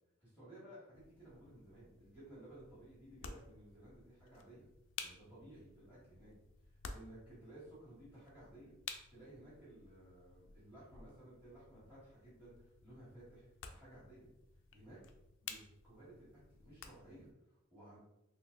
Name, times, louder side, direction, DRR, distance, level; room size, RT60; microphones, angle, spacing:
voice 1, 0.2-4.7 5.0-6.3 6.7-8.8 9.1-14.3 14.7-15.0 15.4-18.0, right 1 dB, 10° right, -9 dB, 1.4 m, -57 dB
sound 1, 0.9-17.3, left 6 dB, 80° left, 0.4 m, -54 dB
3.8 x 2.8 x 2.5 m, 0.87 s
head